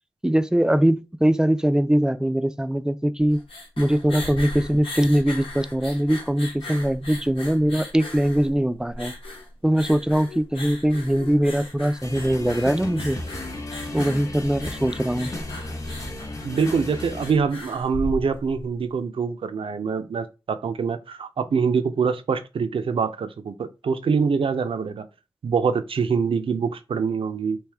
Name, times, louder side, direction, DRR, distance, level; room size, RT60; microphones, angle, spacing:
voice 1, 0.2-3.4 3.8-9.1 9.6-13.2 13.9-15.3, right 1 dB, 10° right, 0.3 m, -22 dB
sound 1, 3.2-18.6, left 1 dB, 85° left, 1.1 m, -38 dB
sound 2, 12.0-17.3, left 2 dB, 35° left, 0.8 m, -34 dB
voice 2, 16.4-25.1 25.4-27.6, right 5 dB, 80° right, 0.5 m, -24 dB
3.5 x 2.6 x 3.3 m
cardioid pair, 60°, 9 cm